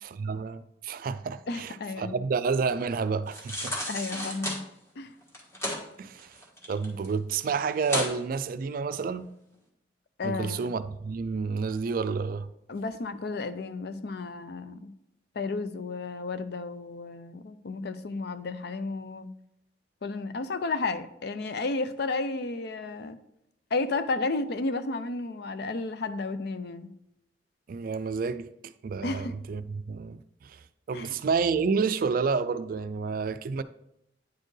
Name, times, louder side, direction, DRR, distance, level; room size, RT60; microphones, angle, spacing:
voice 1, 0.0-3.8 6.0-6.4 6.7-9.3 10.2-12.5 27.7-30.6 30.9-33.6, right 5 dB, 50° right, 0.3 m, -30 dB
voice 2, 1.5-2.2 3.9-4.6 5.0-5.1 10.2-10.7 12.7-14.9 15.3-19.3 20.0-23.2 23.7-26.9 29.0-29.4 30.9-31.2, left 3 dB, 60° left, 0.5 m, -32 dB
sound 1, 3.3-4.6 5.3-5.8 6.2-7.1 7.4-7.5 7.8-8.1 8.6-8.7, left 1 dB, 15° left, 1.3 m, -32 dB
9.5 x 4.3 x 3.2 m
head